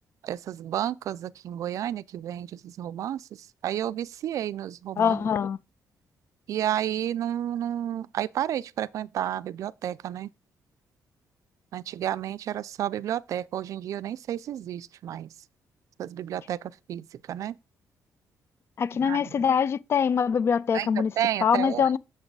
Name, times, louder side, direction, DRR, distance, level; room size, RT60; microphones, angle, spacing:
voice 1, 0.2-3.2 3.6-5.2 6.5-10.3 11.7-15.3 16.0-17.5 19.0-19.3 20.7-20.9 21.2-21.9, right 11 dB, 65° right, 0.4 m, -31 dB
voice 2, 5.0-5.6 18.8-21.1 21.4-22.0, left 7 dB, 45° left, 0.4 m, -23 dB
6.9 x 6.5 x 4.7 m
cardioid pair, 135°, 6 cm